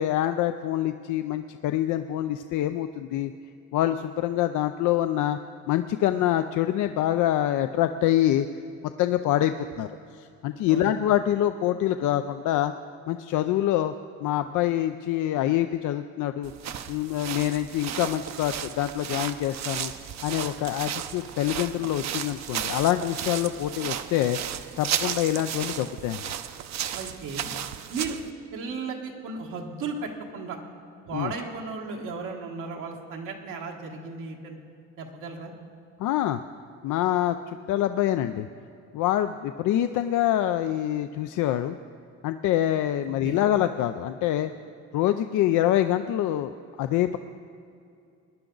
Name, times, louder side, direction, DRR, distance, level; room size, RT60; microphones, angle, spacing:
voice 1, 0.0-3.3 3.7-5.4 5.7-8.5 9.0-9.9 10.1-12.7 13.1-13.9 14.2-16.5 16.9-19.9 20.2-24.4 24.8-26.3 31.1-31.3 36.0-36.4 36.8-37.4 37.7-38.5 38.9-41.8 42.2-44.5 44.9-47.2, left 12 dB, 80° left, 9 dB, 0.5 m, -25 dB
sound 1, 16.4-28.3, right 9 dB, 65° right, 0.7 m, -34 dB
voice 2, 26.9-27.5 27.9-28.2 28.5-30.6 31.1-34.6 35.0-35.5 43.2-43.4, right 4 dB, 90° right, 0 dB, 1.6 m, -35 dB
20.5 x 10.5 x 3.9 m, 2.5 s
cardioid pair, 90°, 30 cm